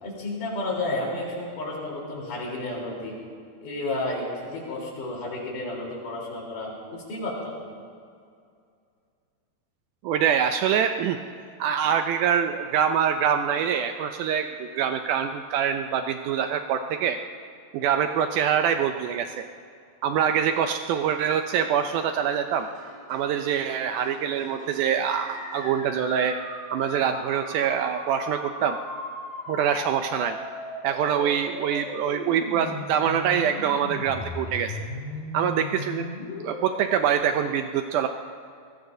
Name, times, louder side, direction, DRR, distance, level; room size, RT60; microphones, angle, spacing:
voice 1, 0.0-3.2 3.6-7.7, left 2 dB, 60° left, -3 dB, 5.1 m, -32 dB
voice 2, 10.0-11.2 11.6-17.2 17.7-19.4 20.0-22.7 23.1-26.4 26.7-28.8 29.5-30.4 30.8-34.8 35.3-36.1 36.4-38.1, right 8 dB, 90° right, 7 dB, 1.8 m, -25 dB
sound 1, 20.9-25.8, right 1 dB, 70° right, 6.1 m, -50 dB
sound 2, 25.0-37.1, left 1 dB, 75° left, 5.7 m, -37 dB
23.5 x 19.5 x 2.7 m, 2.3 s
omnidirectional pair, 4.2 m